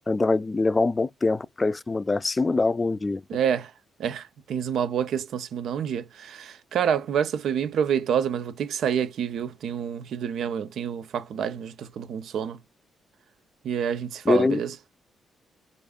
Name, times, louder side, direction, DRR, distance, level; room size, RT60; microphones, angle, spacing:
voice 1, 0.0-3.2 14.3-14.6, left 3 dB, 30° left, 0.3 m, -23 dB
voice 2, 3.3-3.7 4.0-12.6 13.6-14.7, right 8 dB, 70° right, 0.4 m, -28 dB
4.7 x 2.5 x 2.3 m
hypercardioid pair, 45°, 0 cm